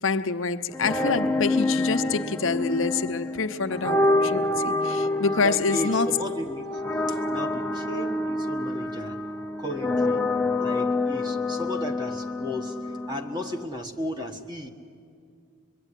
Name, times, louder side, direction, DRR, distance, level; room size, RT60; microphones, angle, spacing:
voice 1, 0.0-6.2, left 4 dB, 70° left, 0.9 m, -26 dB
sound 1, 0.7-13.7, left 2 dB, 10° left, 0.6 m, -27 dB
voice 2, 5.4-6.8 7.1-9.3 9.6-10.2 10.6-14.7, left 1 dB, 20° right, 1.5 m, -34 dB
24.5 x 23.5 x 10.0 m
head